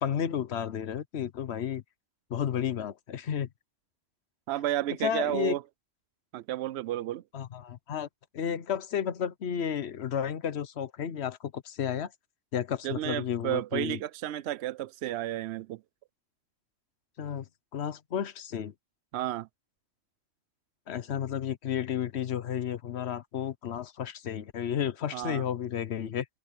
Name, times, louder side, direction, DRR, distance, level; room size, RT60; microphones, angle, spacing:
voice 1, 0.0-1.8 2.3-3.5 5.0-5.6 7.3-8.1 8.3-12.1 12.5-14.0 17.2-17.5 17.7-18.7 20.9-26.2, left 8 dB, 80° left, 1.1 m, -32 dB
voice 2, 4.5-5.6 6.3-7.2 12.8-15.8 19.1-19.5 25.1-25.4, right 13 dB, 80° right, 0.8 m, -32 dB
omnidirectional pair, 1.1 m